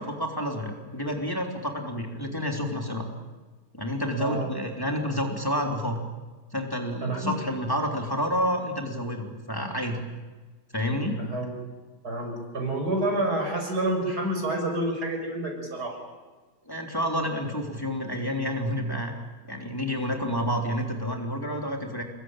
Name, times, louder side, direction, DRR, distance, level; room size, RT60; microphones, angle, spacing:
voice 1, 0.0-3.1 3.7-6.0 6.5-10.0 10.7-11.2 16.6-19.1 19.5-22.0, equal, 15° left, 1 dB, 3.3 m, -29 dB
voice 2, 4.1-4.5 7.0-7.4 11.2-11.5 12.0-16.0, right 1 dB, 80° right, 3 dB, 6.7 m, -28 dB
28.0 x 22.0 x 9.0 m, 1.3 s
omnidirectional pair, 1.7 m